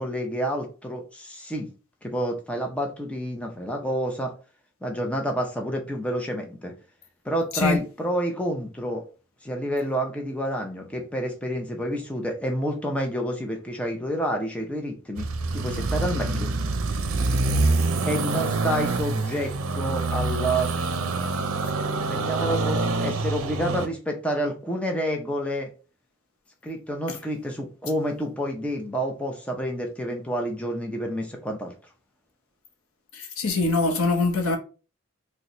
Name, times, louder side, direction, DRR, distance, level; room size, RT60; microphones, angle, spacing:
voice 1, 0.0-1.7 2.0-4.3 4.8-6.7 7.2-9.1 9.4-15.3 15.5-16.5 18.0-20.7 22.1-25.7 26.6-31.7, equal, 5° left, 0.5 m, -29 dB
sound 1, 15.2-23.9, right 3 dB, 85° right, 0.5 m, -26 dB
voice 2, 33.1-34.6, left 3 dB, 90° left, 0.8 m, -23 dB
3.9 x 2.1 x 2.9 m
head